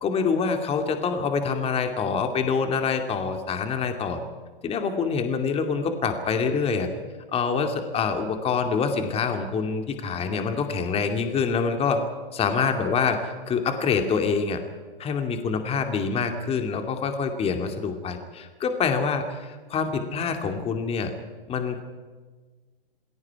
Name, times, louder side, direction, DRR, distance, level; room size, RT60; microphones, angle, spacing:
voice 1, 0.0-4.2 4.6-6.9 7.3-12.0 12.3-14.6 15.0-21.1 21.5-21.8, left 5 dB, 20° left, 6 dB, 2.5 m, -26 dB
28.5 x 21.0 x 4.9 m, 1.4 s
hypercardioid pair, 130°, 30 cm